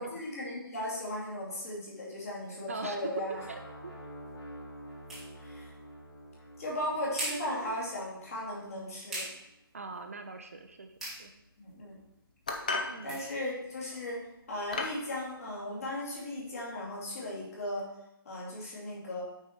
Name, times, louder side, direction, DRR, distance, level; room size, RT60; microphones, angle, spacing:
voice 1, 0.0-3.4 5.4-5.7 6.6-9.3 11.6-12.0 13.0-17.9 18.2-19.2, left 1 dB, 40° left, -4 dB, 2.5 m, -37 dB
voice 2, 2.7-3.2 3.5-3.9 9.7-11.3 12.8-13.2, right 3 dB, 35° right, 5 dB, 0.5 m, -42 dB
sound 1, 3.3-9.2, equal, 80° left, 3.2 m, -49 dB
sound 2, 3.3-14.9, right 1 dB, ahead, 1.0 m, -46 dB
sound 3, 12.5-13.0 13.9-14.1 14.7-15.0, left 3 dB, 20° left, 0.5 m, -33 dB
8.7 x 4.6 x 4.3 m, 0.85 s
hypercardioid pair, 175°, 13 cm